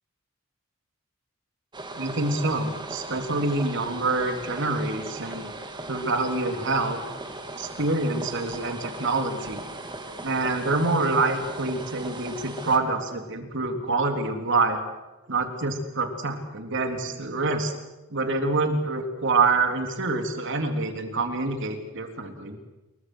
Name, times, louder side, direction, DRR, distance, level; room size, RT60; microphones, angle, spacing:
sound 1, 1.7-12.8, right 2 dB, 20° right, 2.6 m, -38 dB
voice 1, 2.0-5.5 5.9-7.0 7.6-9.6 10.2-14.8 15.3-17.7 18.1-22.6, right 3 dB, 60° right, 5 dB, 3.6 m, -26 dB
28.5 x 22.5 x 6.4 m, 1.1 s
head